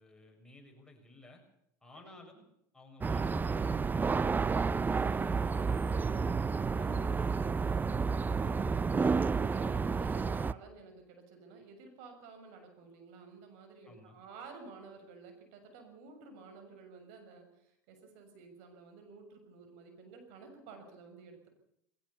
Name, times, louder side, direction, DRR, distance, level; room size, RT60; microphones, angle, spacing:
voice 1, 0.0-1.4 1.8-2.4 2.7-6.3 13.8-14.2, left 2 dB, 5° left, 1 dB, 6.8 m, -58 dB
sound 1, 3.0-10.5, right 5 dB, 20° right, 0.7 m, -30 dB
voice 2, 6.8-21.5, right 4 dB, 65° right, 5 dB, 6.5 m, -53 dB
21.0 x 18.0 x 7.1 m, 0.75 s
hypercardioid pair, 85°, 9 cm